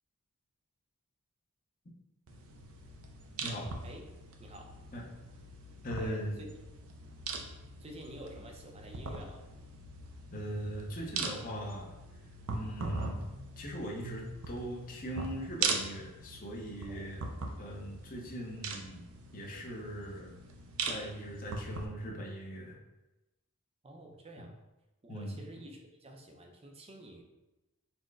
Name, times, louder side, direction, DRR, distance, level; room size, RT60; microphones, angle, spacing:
sound 1, 2.3-21.9, right 4 dB, 70° right, 0.5 m, -41 dB
voice 1, 4.4-4.8 6.0-6.5 7.8-9.5 16.9-17.1 23.8-24.6 25.0-27.2, right 1 dB, 25° right, 2 dB, 0.5 m, -49 dB
voice 2, 5.8-6.3 10.3-11.9 12.5-17.2 17.6-19.0 19.3-20.3 20.8-22.8 24.4-24.5 25.1-25.4, equal, 40° left, -1 dB, 0.7 m, -40 dB
4.2 x 2.1 x 4.6 m, 1.0 s
head